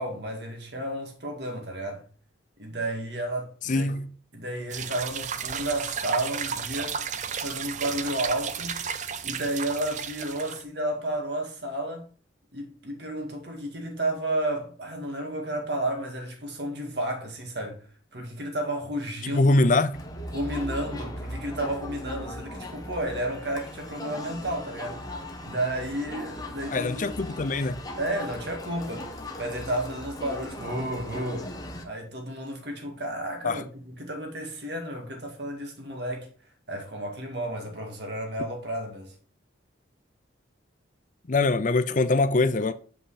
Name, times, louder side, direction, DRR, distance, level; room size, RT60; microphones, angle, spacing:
voice 1, 0.0-2.0 2.6-3.9 4.3-7.0 7.3-8.9 9.2-12.1 12.5-17.9 18.1-19.6 20.3-25.1 25.4-27.5 28.0-29.1 29.4-31.5 31.8-36.3 36.7-39.1, right 1 dB, 55° right, 2.1 m, -32 dB
voice 2, 3.6-4.1 19.2-20.0 26.7-27.8 33.4-33.6 41.3-42.7, left 2 dB, 40° left, 0.5 m, -23 dB
sound 1, 4.7-10.6, right 7 dB, 35° right, 0.5 m, -33 dB
Crowd, 19.9-31.8, left 1 dB, 20° left, 1.0 m, -38 dB
7.7 x 5.5 x 4.2 m
head